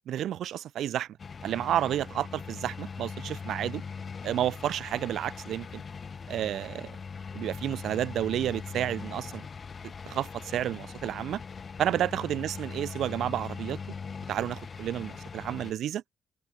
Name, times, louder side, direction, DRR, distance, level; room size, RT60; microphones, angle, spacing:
voice 1, 0.1-1.1 1.4-3.8 4.2-5.8 6.3-6.9 7.3-9.5 10.1-11.4 11.8-13.8 14.3-16.0, right 11 dB, 75° right, 0.6 m, -31 dB
sound 1, 1.2-15.7, left 5 dB, 40° left, 3.3 m, -41 dB
cardioid pair, 90°, 0 cm